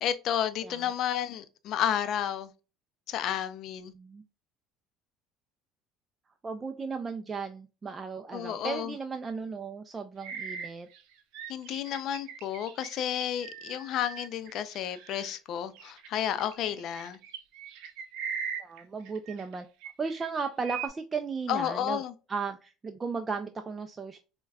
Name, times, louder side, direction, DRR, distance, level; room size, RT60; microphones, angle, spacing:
voice 1, 0.0-2.5 3.1-3.9 8.3-8.9 11.5-17.2 21.5-22.1, left 10 dB, 60° left, 0.4 m, -31 dB
voice 2, 0.6-0.9 3.9-4.2 6.4-10.9 18.6-19.7 20.0-22.0 22.3-24.2, right 5 dB, 25° right, 0.3 m, -35 dB
sound 1, 10.2-15.4 15.7-19.5 19.8-20.9, right 7 dB, 75° right, 0.5 m, -40 dB
4.5 x 2.1 x 2.3 m
supercardioid pair, 100°, 0 cm